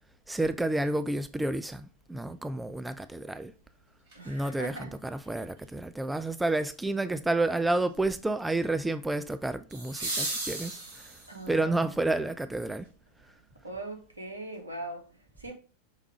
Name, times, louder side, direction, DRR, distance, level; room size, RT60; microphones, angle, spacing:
voice 1, 0.3-3.5 4.3-11.1 11.5-12.9, right 2 dB, 5° right, 0.3 m, -30 dB
sound 1, 4.1-4.2 9.7-11.5 13.7-13.8, right 2 dB, 55° right, 2.1 m, -35 dB
voice 2, 4.1-4.9 11.3-11.9 13.6-15.0 15.4-15.5, right 2 dB, 80° right, 1.4 m, -40 dB
5.6 x 3.5 x 4.8 m
figure-of-eight pair, 90°, 0 cm